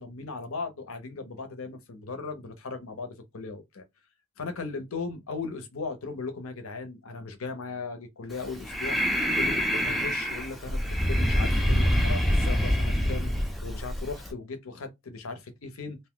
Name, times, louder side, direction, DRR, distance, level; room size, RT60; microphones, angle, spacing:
voice 1, 0.0-3.8 4.4-9.0 9.3-13.3 13.6-16.0, left 4 dB, 80° left, 0.7 m, -37 dB
Breathing, 8.3-14.3, equal, ahead, 0.4 m, -26 dB
2.6 x 2.2 x 3.7 m
head